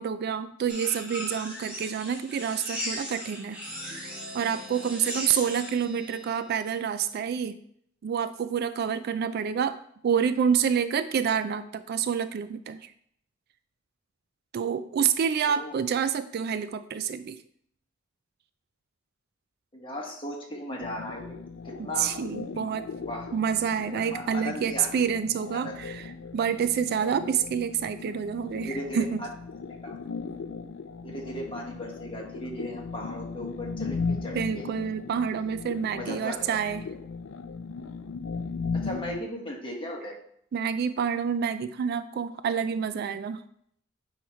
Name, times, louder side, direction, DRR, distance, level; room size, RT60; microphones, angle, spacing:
voice 1, 0.0-7.6 8.0-9.8 10.0-12.9 14.5-17.4 21.8-22.9 23.3-29.2 34.3-36.8 40.5-43.4, right 7 dB, 55° right, 12 dB, 0.3 m, -28 dB
sound 1, 0.7-5.7, left 1 dB, 5° right, 1.5 m, -37 dB
sound 2, 3.6-7.2, equal, 20° right, 1.9 m, -46 dB
voice 2, 19.7-21.4 21.6-22.2 23.0-23.3 24.1-24.9 25.5-25.8 28.5-29.3 29.8-30.0 31.0-34.7 35.9-36.6 38.7-40.2, equal, 25° left, -1 dB, 1.4 m, -37 dB
sound 3, 20.8-39.2, left 4 dB, 75° left, 0.4 m, -37 dB
9.2 x 3.1 x 4.3 m, 0.67 s
head